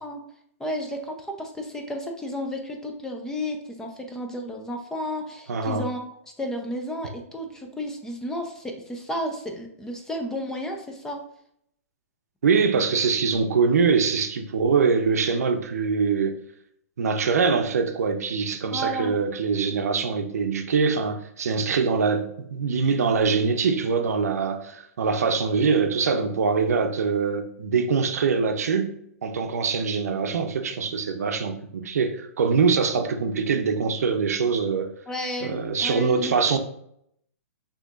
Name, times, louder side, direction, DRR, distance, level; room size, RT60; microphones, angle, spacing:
voice 1, 0.6-6.0 6.4-11.2 18.7-19.2 19.7-19.8 35.1-36.3, equal, 5° left, 0.5 m, -32 dB
voice 2, 5.5-5.9 12.4-16.4 17.0-34.9 35.4-36.6, right 5 dB, 80° right, 0.6 m, -23 dB
6.4 x 2.9 x 2.4 m
hypercardioid pair, 140°, 8 cm